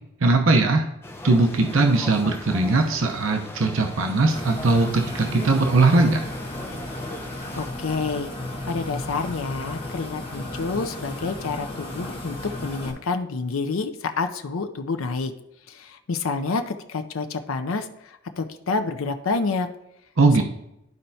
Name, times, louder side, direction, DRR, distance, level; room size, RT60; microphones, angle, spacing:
voice 1, 0.2-0.8 1.2-6.3 20.2-20.4, right 3 dB, 75° right, 3 dB, 0.8 m, -19 dB
sound 1, 1.0-7.7, left 1 dB, 10° left, 0.6 m, -39 dB
sound 2, 4.3-12.9, left 1 dB, 30° left, 1.2 m, -34 dB
voice 2, 7.5-8.3 8.7-15.3 15.7-17.9 18.4-19.7, left 4 dB, 85° left, 8 dB, 0.6 m, -28 dB
12.0 x 4.4 x 2.7 m, 0.83 s
head